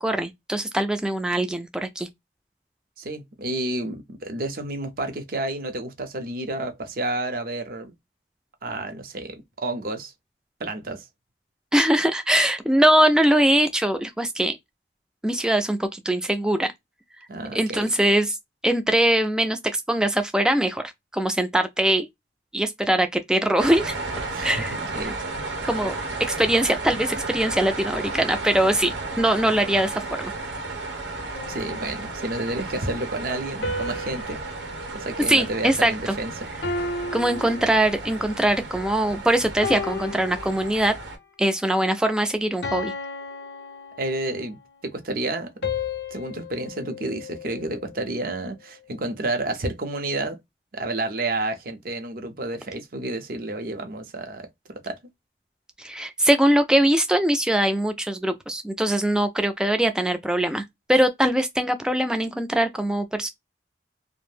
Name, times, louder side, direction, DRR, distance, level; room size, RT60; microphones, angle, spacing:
voice 1, 0.0-2.1 11.7-14.6 15.2-16.7 17.5-18.4 18.6-20.8 21.1-22.1 22.5-24.0 24.4-24.8 25.7-30.3 35.3-36.1 37.1-40.9 41.4-42.9 55.8-63.3, right 1 dB, 5° right, 0.3 m, -22 dB
voice 2, 3.0-7.9 8.6-10.1 10.6-11.1 17.3-17.9 24.3-25.2 25.6-25.7 31.5-34.4 34.9-36.5 44.0-45.5 46.1-50.4 50.7-54.5 54.8-55.0, right 2 dB, 50° right, 0.6 m, -30 dB
sound 1, 23.6-41.2, right 3 dB, 90° right, 0.9 m, -33 dB
sound 2, 31.3-32.6 33.6-36.1 36.6-38.3 38.9-39.2 39.6-41.2 41.6-41.9 42.6-44.5 45.6-48.0, left 3 dB, 60° left, 0.6 m, -34 dB
2.5 x 2.0 x 3.2 m
head